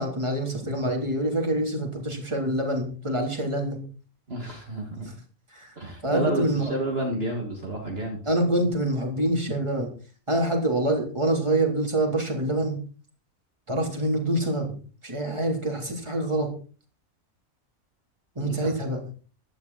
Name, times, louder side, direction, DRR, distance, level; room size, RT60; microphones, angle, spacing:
voice 1, 0.0-3.8 5.1-5.2 5.5-5.8 6.0-6.7 8.3-9.9 10.3-12.8 13.7-14.7 15.0-16.5 18.4-19.0, right 1 dB, 20° right, 1 dB, 3.4 m, -26 dB
voice 2, 4.3-5.2 5.8-8.2 18.4-18.7, right 1 dB, 45° right, 1 dB, 2.4 m, -30 dB
15.0 x 12.0 x 4.1 m, 0.39 s
omnidirectional pair, 1.4 m